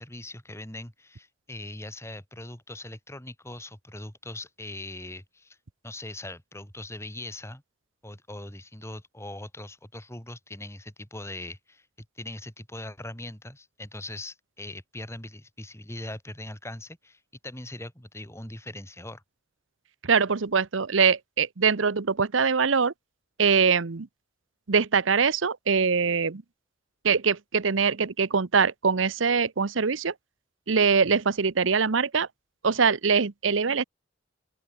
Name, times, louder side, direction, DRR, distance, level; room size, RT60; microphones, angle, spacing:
voice 1, 0.0-5.6 5.8-7.6 8.0-11.9 12.1-19.2, left 1 dB, 15° left, 5.2 m, -41 dB
voice 2, 20.0-22.9 23.4-24.1 24.7-26.4 27.0-30.1 30.7-32.3 32.6-33.8, right 5 dB, 80° right, 0.9 m, -23 dB
open air
head